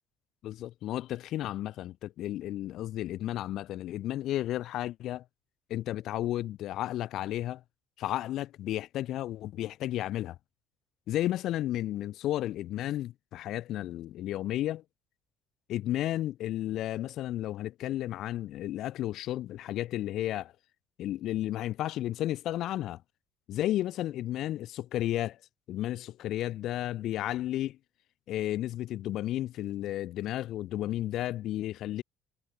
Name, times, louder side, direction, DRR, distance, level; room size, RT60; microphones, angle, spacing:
voice 1, 0.4-5.2 5.7-7.6 8.0-10.4 11.1-14.8 15.7-20.5 21.0-23.0 23.5-25.4 25.7-27.8 28.3-32.0, left 13 dB, 55° left, 0.4 m, -33 dB
cardioid pair, 160°, 0 cm